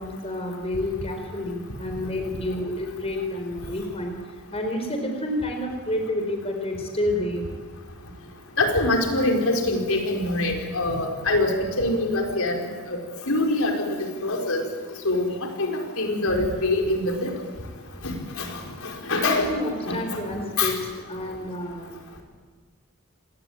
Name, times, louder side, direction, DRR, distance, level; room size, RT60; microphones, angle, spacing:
voice 1, 0.0-4.1 4.5-7.4 9.5-9.6 19.1-20.8 21.1-21.9, left 1 dB, 25° left, 3 dB, 4.2 m, -29 dB
voice 2, 8.6-12.6 12.9-13.0 13.3-14.0 14.2-14.6 15.0-15.2 15.6-17.3 18.0-18.5 18.8-19.5 19.9-20.0 20.6-20.7, left 2 dB, 70° left, 2 dB, 4.9 m, -24 dB
28.0 x 21.0 x 8.8 m, 1.5 s
head